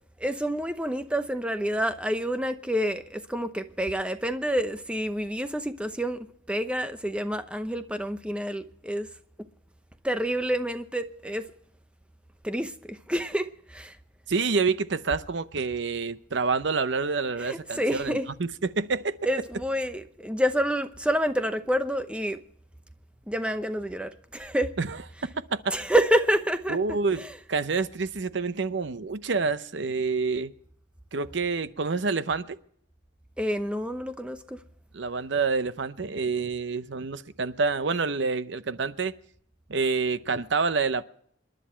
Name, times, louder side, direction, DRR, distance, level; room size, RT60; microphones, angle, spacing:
voice 1, 0.2-9.1 10.0-11.5 12.4-14.0 17.4-18.3 19.3-22.4 23.3-24.7 25.7-27.3 33.4-34.6, equal, 5° right, 0.8 m, -28 dB
voice 2, 14.3-18.2 18.8-19.2 24.8-25.0 25.5-25.7 26.7-27.2 27.5-30.5 31.1-32.6 34.9-39.1 39.7-41.0, right 4 dB, 65° right, 0.7 m, -27 dB
27.5 x 11.0 x 4.4 m
head